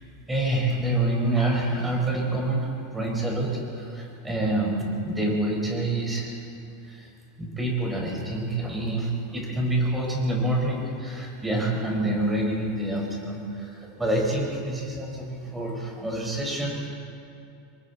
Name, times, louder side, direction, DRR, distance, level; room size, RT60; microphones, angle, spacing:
voice 1, 0.3-6.3 6.9-7.1 7.4-16.9, right 1 dB, 10° right, -1 dB, 5.0 m, -27 dB
27.0 x 23.5 x 4.2 m, 2.7 s
supercardioid pair, 155°, 0 cm